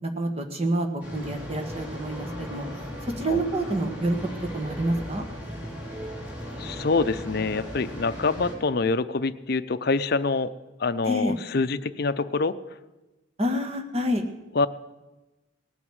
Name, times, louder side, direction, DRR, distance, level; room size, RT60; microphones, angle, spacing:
voice 1, 0.0-2.6 3.0-4.2 4.5-5.2 11.0-11.3 13.4-14.2, right 1 dB, 30° right, 4 dB, 1.6 m, -27 dB
sound 1, 1.0-8.5, equal, 10° right, 3.8 m, -37 dB
voice 2, 6.6-10.5 10.8-12.6 14.5-14.7, left 3 dB, 50° left, 13 dB, 0.6 m, -25 dB
19.0 x 9.3 x 7.9 m, 1.1 s
head